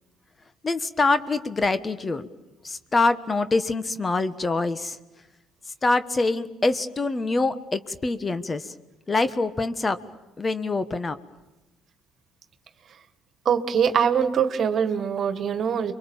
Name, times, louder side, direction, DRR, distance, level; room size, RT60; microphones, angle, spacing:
voice 1, 0.6-2.3 2.6-5.0 5.8-8.7 9.1-10.0 10.4-11.2, left 3 dB, 30° left, 12 dB, 1.4 m, -25 dB
voice 2, 13.4-15.9, right 7 dB, 55° right, 10 dB, 1.7 m, -23 dB
29.5 x 23.5 x 7.3 m, 1.0 s
hypercardioid pair, 65°, 0 cm